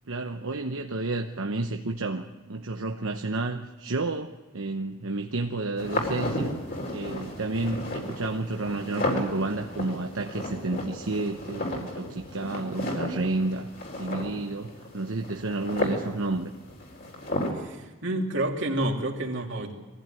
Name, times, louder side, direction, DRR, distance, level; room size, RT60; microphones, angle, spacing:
voice 1, 0.1-6.5 6.9-13.7 13.9-16.5, right 2 dB, 75° right, 4 dB, 1.0 m, -31 dB
sound 1, 5.8-17.5, left 1 dB, 45° left, 4.4 m, -33 dB
voice 2, 17.5-19.7, right 1 dB, 55° right, 1 dB, 2.9 m, -29 dB
22.5 x 15.5 x 9.1 m, 1.2 s
head